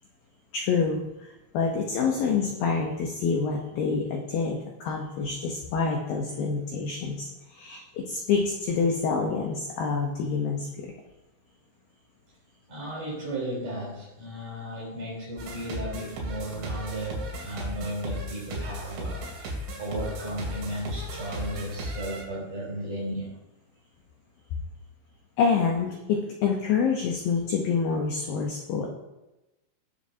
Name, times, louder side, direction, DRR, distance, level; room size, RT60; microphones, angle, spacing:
voice 1, 0.5-10.9 25.4-28.9, left 5 dB, 85° left, 1 dB, 2.0 m, -27 dB
voice 2, 12.7-23.4, right 1 dB, 45° right, -4 dB, 5.0 m, -35 dB
sound 1, 15.4-22.2, equal, 90° right, 5.1 m, -36 dB
19.0 x 7.6 x 2.8 m, 1.0 s
omnidirectional pair, 5.6 m